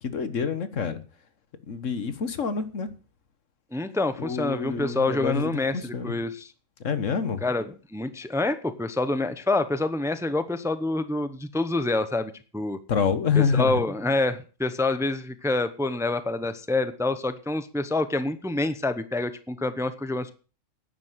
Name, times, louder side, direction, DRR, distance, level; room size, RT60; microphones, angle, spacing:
voice 1, 0.0-1.0 1.7-2.9 4.2-6.1 6.8-7.4 12.9-13.8, left 6 dB, 75° left, 1.7 m, -27 dB
voice 2, 3.7-6.5 7.4-12.8 13.3-20.3, left 2 dB, 5° right, 0.8 m, -27 dB
11.0 x 9.6 x 7.5 m
omnidirectional pair, 1.3 m